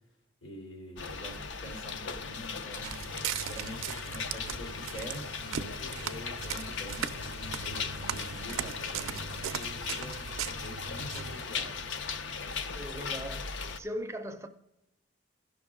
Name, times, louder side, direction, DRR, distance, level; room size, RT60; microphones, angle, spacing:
voice 1, 0.4-2.9 3.4-11.9, equal, 85° left, 3.0 m, -46 dB
sound 1, 1.0-13.8, left 5 dB, 70° left, 0.6 m, -38 dB
Walk footsteps, 2.7-11.4, right 9 dB, 90° right, 0.4 m, -39 dB
voice 2, 12.7-14.5, equal, 15° right, 0.4 m, -39 dB
15.5 x 6.0 x 3.6 m
head